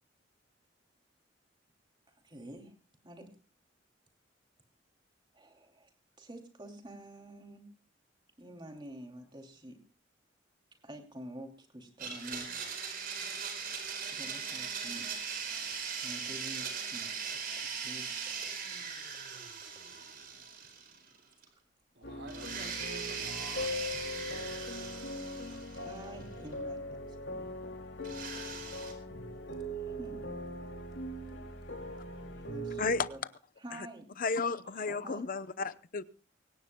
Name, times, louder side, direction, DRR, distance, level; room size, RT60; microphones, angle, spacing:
voice 1, 2.2-2.8 3.0-3.3 5.3-5.9 6.2-7.7 8.4-9.8 10.8-12.5 14.1-15.1 16.0-19.7 25.7-27.5 29.7-30.3 32.3-33.2 33.6-34.1 34.9-35.2, right 1 dB, 25° right, 3 dB, 2.7 m, -48 dB
Domestic sounds home sounds, 12.0-21.2 21.4-21.5 22.3-26.2 28.0-28.9, right 6 dB, 55° right, 4.4 m, -40 dB
voice 2, 21.9-23.7 34.7-34.9, right 2 dB, 90° right, 5 dB, 4.6 m, -49 dB
sound 1, 22.0-33.1, left 1 dB, 85° left, 2.6 m, -40 dB
voice 3, 34.2-36.0, left 4 dB, 50° left, 14 dB, 0.8 m, -32 dB
24.5 x 17.5 x 2.2 m, 0.34 s
head